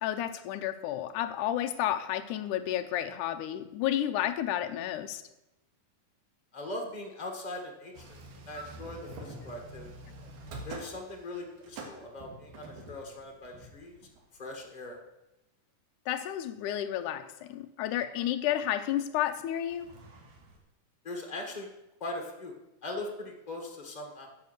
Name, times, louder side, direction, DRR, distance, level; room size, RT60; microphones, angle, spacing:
voice 1, 0.0-5.2 16.1-19.9, left 11 dB, 75° left, 2.1 m, -31 dB
voice 2, 6.5-8.2 8.5-9.9 10.6-14.0 14.4-15.0 21.0-21.7 22.0-22.6 22.8-24.3, left 2 dB, 55° left, 0.4 m, -40 dB
sound 1, 7.9-14.6 19.7-20.6, right 2 dB, 70° right, 3.1 m, -46 dB
11.5 x 7.2 x 6.7 m
omnidirectional pair, 4.0 m